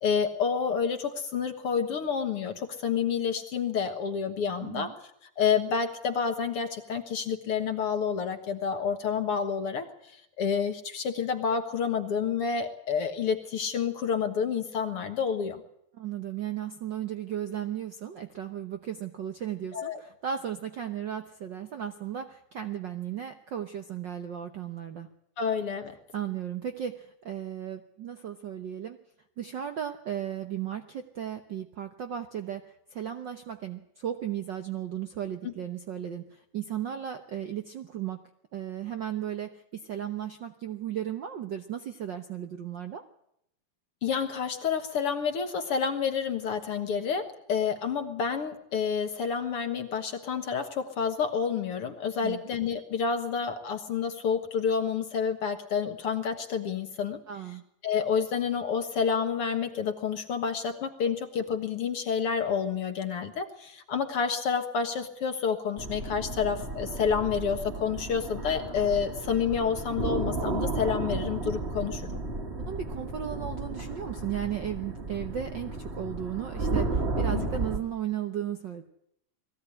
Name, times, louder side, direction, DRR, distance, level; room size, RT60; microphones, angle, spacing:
voice 1, 0.0-5.0 5.4-15.6 19.7-20.0 25.4-26.0 35.4-35.5 44.0-57.2 57.8-72.2 77.3-77.5, left 6 dB, 55° left, 7 dB, 1.9 m, -29 dB
voice 2, 4.6-5.0 15.9-25.1 26.1-29.0 29.4-38.2 38.5-43.0 52.2-52.4 57.3-57.6 72.7-78.8, right 10 dB, 90° right, 8 dB, 0.9 m, -35 dB
sound 1, 65.8-77.8, right 3 dB, 25° right, 1.5 m, -33 dB
21.0 x 16.0 x 9.9 m, 0.76 s
omnidirectional pair, 3.6 m